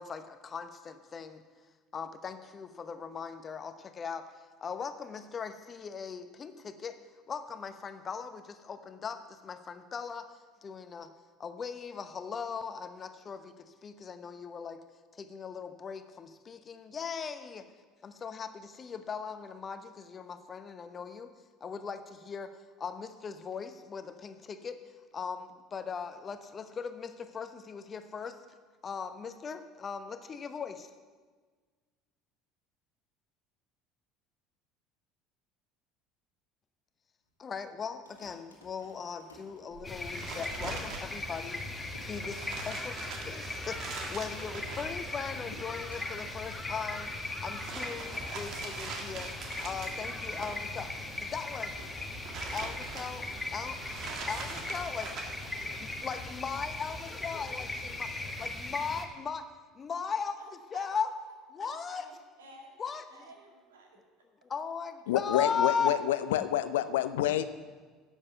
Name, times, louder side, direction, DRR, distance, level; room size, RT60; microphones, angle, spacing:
voice 1, 0.0-1.4 1.9-4.2 4.6-7.0 7.3-11.1 11.4-14.8 15.1-17.6 18.0-21.3 21.6-22.5 22.8-24.8 25.1-28.4 28.8-30.9 37.4-41.6 42.0-50.9 51.2-51.7 52.5-53.8 54.3-55.1 55.8-58.1 58.4-59.4 59.7-60.4 60.7-61.1 61.5-62.0 62.8-63.3 64.4-65.9, left 6 dB, 35° left, 9 dB, 0.9 m, -38 dB
sound 1, 37.9-40.2 40.5-40.6 40.8-42.8 43.2-43.3 43.5-43.9 44.3-46.4 46.7-47.0 47.5-47.6 48.4-50.9 51.1-54.1, left 1 dB, 85° left, 1.7 m, -57 dB
sound 2, 39.7-57.0, right 4 dB, 50° right, 1.6 m, -44 dB
sound 3, 39.8-59.1, left 2 dB, 15° left, 1.5 m, -39 dB
voice 2, 54.1-55.5 59.1-59.2 60.4-60.5 60.7-60.9 61.6-64.0, right 2 dB, 75° right, 1 dB, 2.1 m, -53 dB
voice 3, 65.1-67.4, left 12 dB, 70° left, 13 dB, 0.5 m, -28 dB
11.0 x 7.3 x 7.0 m, 1.4 s
figure-of-eight pair, 65°, 0 cm